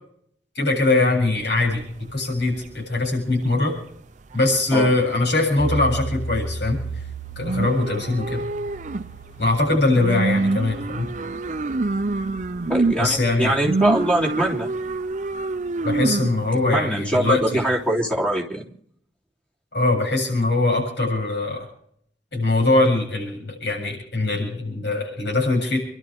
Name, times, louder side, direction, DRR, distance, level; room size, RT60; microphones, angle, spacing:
voice 1, 0.5-1.8 2.1-3.8 4.3-6.8 7.4-8.4 9.4-11.1 13.0-13.6 15.8-17.6 19.7-21.7 22.3-25.8, left 2 dB, 65° left, -1 dB, 7.9 m, -22 dB
sound 1, 1.4-3.8 4.1-4.7 5.0-5.5 5.9-6.6 7.1-17.8, right 3 dB, 40° right, 0.6 m, -27 dB
sound 2, 5.6-14.9 15.3-15.4, right 2 dB, 35° left, 7.4 m, -36 dB
voice 2, 12.7-14.7 16.7-18.6, right 1 dB, 5° left, -1 dB, 3.4 m, -22 dB
29.5 x 12.5 x 3.6 m, 0.66 s
head